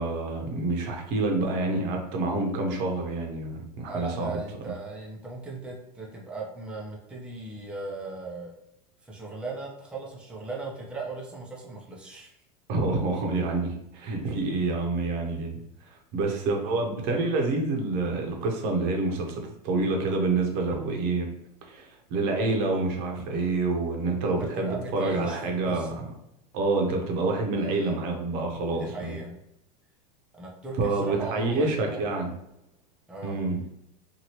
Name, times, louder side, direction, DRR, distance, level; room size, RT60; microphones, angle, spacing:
voice 1, 0.0-4.4 12.7-15.6 16.1-21.3 21.7-26.1 26.5-29.2 30.8-32.3 33.2-33.6, right 3 dB, 55° right, 2 dB, 0.9 m, -27 dB
voice 2, 3.9-8.5 9.0-12.3 24.2-26.0 27.6-28.0 28.7-29.3 30.3-32.2 33.1-33.4, right 3 dB, 5° right, -3 dB, 0.7 m, -38 dB
2.8 x 2.6 x 2.9 m, 0.80 s
hypercardioid pair, 100°, 21 cm